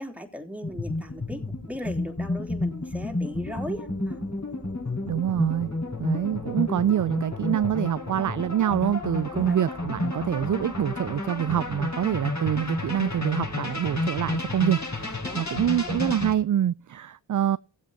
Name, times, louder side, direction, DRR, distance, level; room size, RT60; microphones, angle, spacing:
voice 1, 0.0-4.2 9.3-9.6 15.2-15.5, equal, 5° right, 3.4 m, -38 dB
sound 1, 0.6-16.3, left 2 dB, 35° left, 5.2 m, -31 dB
voice 2, 5.0-5.7 6.0-17.6, right 10 dB, 40° right, 0.5 m, -26 dB
15.0 x 8.1 x 4.0 m
supercardioid pair, 40°, 49 cm